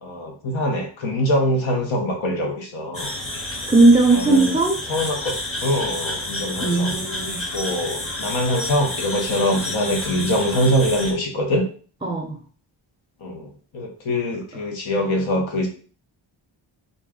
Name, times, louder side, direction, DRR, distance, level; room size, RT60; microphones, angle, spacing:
voice 1, 0.0-3.1 4.1-4.6 4.9-5.3 5.6-7.0 7.5-11.6 13.2-15.7, equal, 90° left, 2 dB, 0.9 m, -23 dB
sound 1, 2.9-11.1, left 1 dB, 30° left, 0.7 m, -30 dB
voice 2, 3.7-4.8 6.6-7.4 12.0-12.4, right 2 dB, 10° right, 0 dB, 0.4 m, -17 dB
3.9 x 2.2 x 3.6 m, 0.42 s
wide cardioid pair, 150°, 46 cm